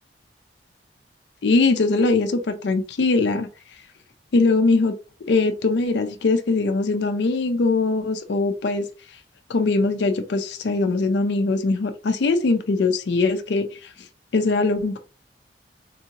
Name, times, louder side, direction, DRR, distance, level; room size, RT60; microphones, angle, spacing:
voice 1, 1.4-3.5 4.3-4.9 5.3-8.9 9.5-13.9 14.3-15.0, left 3 dB, 65° left, 7 dB, 0.4 m, -21 dB
3.6 x 2.7 x 2.8 m, 0.34 s
head